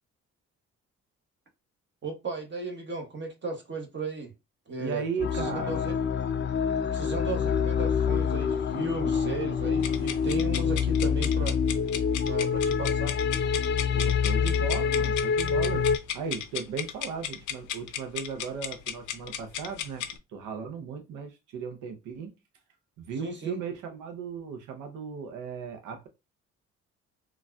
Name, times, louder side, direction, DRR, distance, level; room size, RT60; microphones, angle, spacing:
voice 1, 2.0-4.3 4.7-5.0 5.3-6.0 6.9-11.6 12.2-13.1 23.2-23.6, right 3 dB, 40° right, 0.9 m, -35 dB
voice 2, 4.8-5.9 13.9-15.9 16.1-20.0 20.3-22.3 23.1-26.1, right 6 dB, 90° right, 0.6 m, -36 dB
sound 1, 5.2-16.0, left 6 dB, 40° left, 0.5 m, -26 dB
sound 2, 9.8-20.2, left 10 dB, 90° left, 0.5 m, -36 dB
3.9 x 2.3 x 2.3 m
cardioid pair, 90°, 30 cm